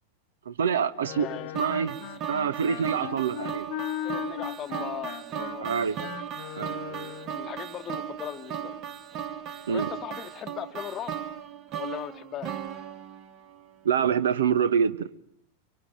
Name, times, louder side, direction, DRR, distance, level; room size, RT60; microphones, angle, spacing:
voice 1, 0.4-1.3 1.5-3.7 5.6-6.0 6.6-7.1 9.7-9.9 13.8-15.1, right 7 dB, 65° right, 1.1 m, -26 dB
Wind instrument woodwind instrument, 1.0-7.4, left 13 dB, 50° left, 1.1 m, -38 dB
voice 2, 1.1-1.5 4.0-6.1 7.0-8.8 9.7-11.1 11.7-12.5, left 10 dB, 25° left, 1.1 m, -39 dB
sound 1, 1.5-13.7, right 8 dB, 35° right, 1.4 m, -37 dB
24.5 x 24.0 x 9.1 m
figure-of-eight pair, 90°, 0 cm